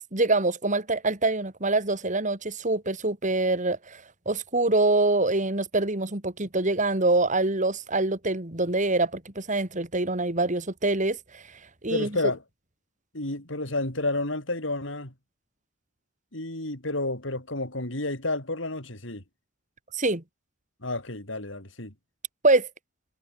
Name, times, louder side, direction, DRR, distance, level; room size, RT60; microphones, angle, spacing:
voice 1, 0.1-11.4 11.8-12.1 19.9-20.2 22.4-22.7, right 2 dB, 40° right, 3.0 m, -25 dB
voice 2, 11.9-12.4 13.1-15.1 16.3-19.2 20.8-21.9, left 2 dB, 70° left, 5.6 m, -30 dB
head